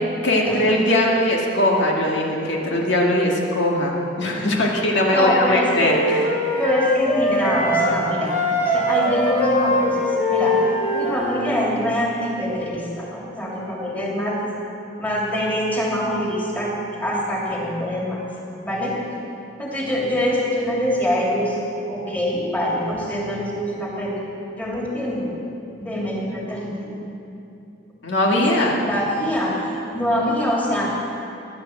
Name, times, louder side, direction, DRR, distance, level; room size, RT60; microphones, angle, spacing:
voice 1, 0.2-6.2 28.0-28.7, left 1 dB, 70° left, -1 dB, 1.9 m, -20 dB
Wind instrument woodwind instrument, 5.0-8.0 8.3-11.4, left 1 dB, 45° left, 3.6 m, -22 dB
voice 2, 5.1-5.9 6.6-8.4 8.6-10.0 10.3-10.6 10.9-14.4 15.0-16.7 17.0-18.2 18.6-18.9 19.6-21.6 21.9-24.1 24.6-25.3 25.8-27.0 28.6-29.6 29.9-31.0, equal, 10° left, -4 dB, 2.8 m, -24 dB
16.0 x 10.5 x 7.8 m, 2.8 s
head